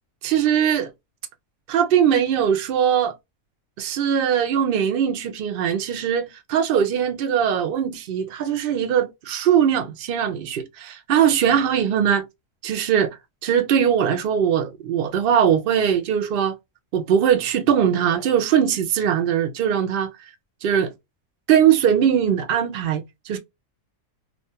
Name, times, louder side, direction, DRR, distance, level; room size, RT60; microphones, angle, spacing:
voice 1, 0.2-0.9 1.7-3.1 3.8-12.2 12.6-16.6 16.9-20.1 20.6-20.9 21.5-23.4, right 8 dB, 75° right, 0.5 m, -21 dB
2.4 x 2.2 x 2.7 m
omnidirectional pair, 1.5 m